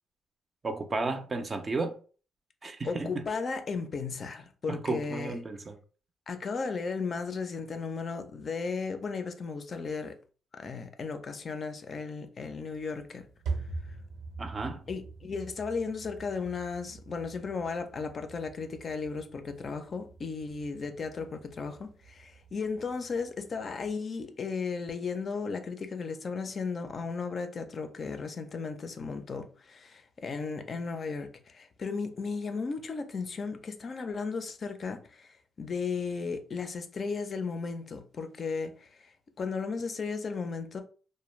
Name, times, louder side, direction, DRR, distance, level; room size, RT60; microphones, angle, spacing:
voice 1, 0.6-1.9 2.6-3.2 4.7-5.8 14.4-14.8, right 3 dB, 30° right, 0.4 m, -33 dB
voice 2, 2.8-5.3 6.3-10.2 10.5-13.2 14.9-40.8, left 4 dB, 45° left, 0.4 m, -35 dB
sound 1, 12.5-23.9, right 4 dB, 80° right, 0.6 m, -44 dB
2.4 x 2.1 x 3.1 m
cardioid pair, 90°, 0 cm